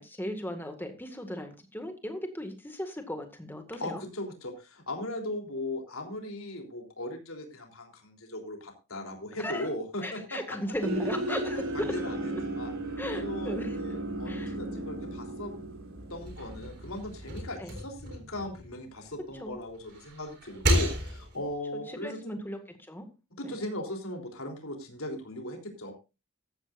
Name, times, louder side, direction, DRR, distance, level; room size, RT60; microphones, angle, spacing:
voice 1, 0.0-4.0 9.4-9.7 10.0-11.9 13.0-13.8 14.3-14.6 17.6-17.8 19.4-19.6 21.9-22.6 22.9-23.1 23.4-23.6, equal, 10° left, 6 dB, 1.9 m, -36 dB
voice 2, 3.8-10.6 11.3-12.7 13.1-15.5 16.1-22.4 23.4-25.9, left 1 dB, 70° left, 3 dB, 3.5 m, -38 dB
sound 1, 10.8-17.4, right 1 dB, 70° right, 3.4 m, -35 dB
sound 2, 16.1-19.3 19.7-21.5, right 1 dB, 50° right, 3.9 m, -32 dB
15.0 x 13.5 x 2.6 m, 0.28 s
head